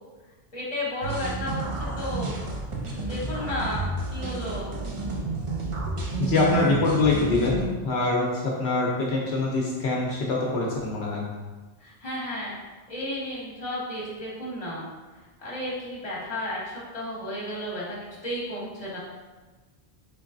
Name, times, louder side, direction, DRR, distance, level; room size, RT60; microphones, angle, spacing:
voice 1, 0.5-2.4 3.0-4.8 11.8-12.6 12.9-14.8 15.2-18.0 18.2-19.0, left 1 dB, 35° left, -7 dB, 1.1 m, -33 dB
sound 1, 1.0-7.7, right 2 dB, 40° right, 0.5 m, -31 dB
voice 2, 6.2-11.2, left 3 dB, 80° left, -3 dB, 0.8 m, -24 dB
3.8 x 3.2 x 2.5 m, 1.3 s
omnidirectional pair, 1.1 m